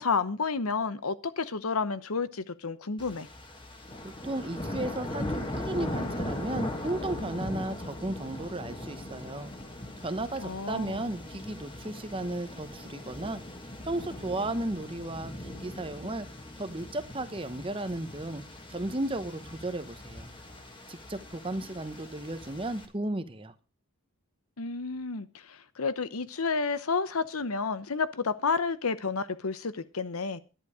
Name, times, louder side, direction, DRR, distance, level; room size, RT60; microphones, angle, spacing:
voice 1, 0.0-3.3 10.4-11.0 24.6-30.4, left 4 dB, 80° left, 0.9 m, -31 dB
sound 1, 3.0-22.9, left 1 dB, 20° left, 1.7 m, -39 dB
voice 2, 4.2-9.5 10.0-13.4 13.8-16.3 16.6-18.4 18.7-20.3 20.9-23.5, right 1 dB, 25° right, 0.9 m, -34 dB
11.0 x 10.5 x 4.9 m
head